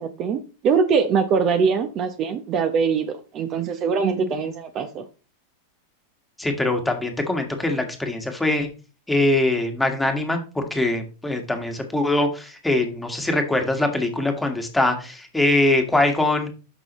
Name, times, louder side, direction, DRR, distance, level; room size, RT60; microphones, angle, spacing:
voice 1, 0.0-5.0, right 5 dB, 35° right, 10 dB, 0.8 m, -22 dB
voice 2, 6.4-8.7 9.1-16.5, left 2 dB, 5° left, 4 dB, 1.6 m, -22 dB
12.0 x 5.5 x 3.1 m, 0.34 s
supercardioid pair, 135°, 0 cm